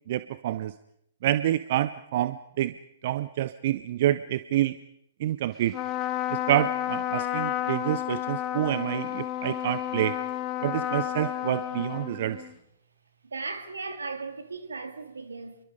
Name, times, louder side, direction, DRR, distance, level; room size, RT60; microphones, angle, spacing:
voice 1, 0.1-0.7 1.2-2.7 3.0-4.8 5.2-5.8 6.3-10.2 10.6-12.4, right 13 dB, 50° right, 0.8 m, -27 dB
Trumpet, 5.7-12.5, left 12 dB, 30° left, 2.3 m, -31 dB
voice 2, 13.2-15.6, right 4 dB, 75° right, 2.9 m, -37 dB
27.5 x 23.0 x 5.1 m
figure-of-eight pair, 120°, 0 cm